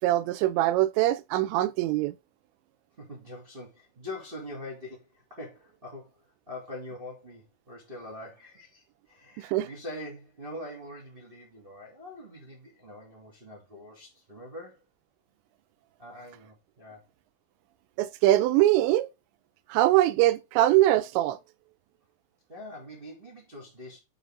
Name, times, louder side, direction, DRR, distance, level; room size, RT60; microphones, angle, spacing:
voice 1, 0.0-2.1 9.4-9.7 18.0-19.1 19.7-21.4, right 15 dB, 85° right, 2.9 m, -23 dB
voice 2, 3.0-6.2 6.5-14.8 16.0-17.0 22.5-24.0, left 1 dB, 20° right, 1.7 m, -43 dB
8.0 x 4.9 x 3.7 m
omnidirectional pair, 5.2 m